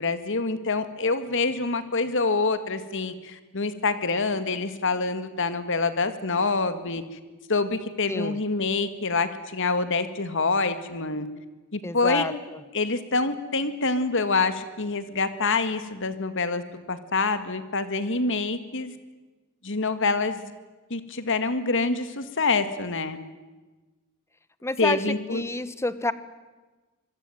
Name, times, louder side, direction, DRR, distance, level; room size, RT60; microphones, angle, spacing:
voice 1, 0.0-7.0 7.5-11.3 11.7-12.3 12.7-18.9 19.6-20.4 20.9-23.2 24.8-25.4, left 3 dB, 60° left, 11 dB, 2.2 m, -26 dB
voice 2, 11.8-12.3 24.6-26.1, left 2 dB, 15° left, 14 dB, 1.2 m, -29 dB
25.5 x 23.0 x 9.2 m, 1.2 s
head